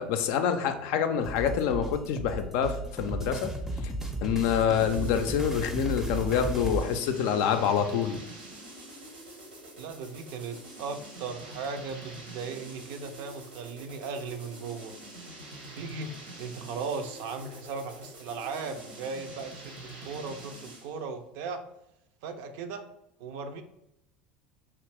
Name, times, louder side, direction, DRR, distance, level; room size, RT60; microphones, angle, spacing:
voice 1, 0.0-3.5 4.2-8.2, left 8 dB, 65° left, 7 dB, 0.4 m, -26 dB
sound 1, 1.2-6.9, right 1 dB, 5° right, 0.5 m, -34 dB
sound 2, 4.8-21.0, right 1 dB, 90° right, 0.8 m, -46 dB
voice 2, 9.8-14.9 15.7-21.6 22.2-22.9 23.2-23.6, right 4 dB, 65° right, 8 dB, 0.4 m, -37 dB
2.9 x 2.5 x 3.3 m, 0.85 s
hypercardioid pair, 80°, 5 cm